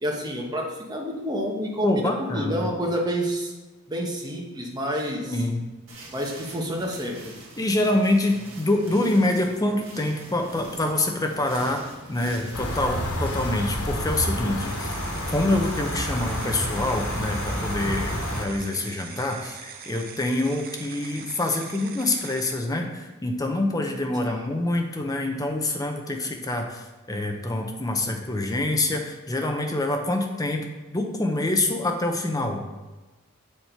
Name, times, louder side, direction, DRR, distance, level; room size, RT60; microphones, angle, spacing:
voice 1, 0.0-3.5 3.9-5.4 6.1-7.3 24.2-24.6, equal, 20° right, -1 dB, 1.1 m, -29 dB
voice 2, 1.8-2.7 5.2-5.7 7.6-14.9 15.3-32.6, left 2 dB, 15° left, 3 dB, 0.6 m, -26 dB
sound 1, 5.9-12.8, right 2 dB, 60° right, 1.8 m, -44 dB
sound 2, 12.5-18.4, equal, 80° left, 1.2 m, -29 dB
sound 3, 14.6-22.6, right 6 dB, 45° right, 0.6 m, -42 dB
7.2 x 4.3 x 4.5 m, 1.2 s
head